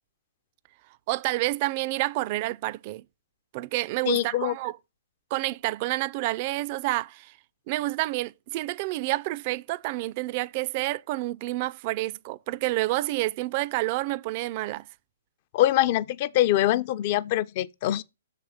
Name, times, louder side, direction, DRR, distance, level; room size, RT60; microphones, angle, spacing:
voice 1, 1.1-3.1 3.5-4.8 5.3-7.4 7.7-14.9, right 19 dB, 40° right, 0.3 m, -29 dB
voice 2, 4.1-4.5 15.5-18.0, left 14 dB, 40° left, 0.4 m, -24 dB
6.6 x 4.4 x 5.5 m
figure-of-eight pair, 125°, 0 cm